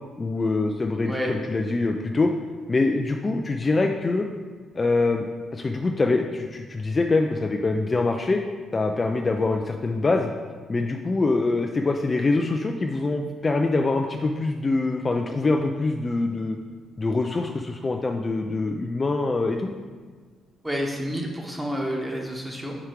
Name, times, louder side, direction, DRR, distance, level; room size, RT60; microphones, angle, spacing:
voice 1, 0.2-2.3 2.7-4.3 4.8-5.3 5.5-8.4 8.7-10.3 10.7-16.6 17.0-19.7, left 3 dB, 30° left, 3 dB, 0.3 m, -24 dB
voice 2, 20.6-22.7, equal, 10° right, 0 dB, 1.1 m, -29 dB
4.9 x 4.5 x 4.6 m, 1.5 s
cardioid pair, 90°, 0 cm